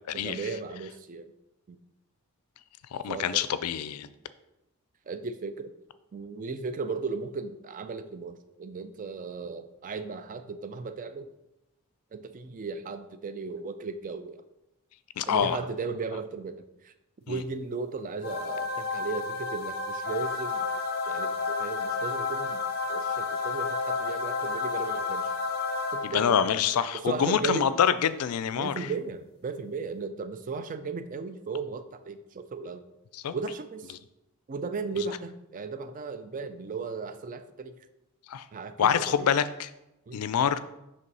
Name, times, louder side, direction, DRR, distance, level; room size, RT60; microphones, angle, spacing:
voice 1, 0.1-1.3 1.7-1.8 3.1-3.5 5.1-5.7 6.1-11.3 12.1-14.4 15.2-16.9 17.3-20.7 21.1-22.6 22.9-25.3 25.9-26.4 26.9-27.7 28.6-32.8 33.3-33.9 34.5-37.8 38.5-39.3 40.1-40.2, right 4 dB, 35° right, 10 dB, 0.4 m, -36 dB
voice 2, 2.9-4.1 15.2-15.6 17.3-17.4 26.0-28.7 33.1-33.3 38.3-38.4 38.8-39.7 40.1-40.6, left 8 dB, 85° left, 13 dB, 0.4 m, -26 dB
sound 1, 18.2-26.5, left 4 dB, 45° left, 0.6 m, -31 dB
5.4 x 3.4 x 5.3 m, 0.92 s
head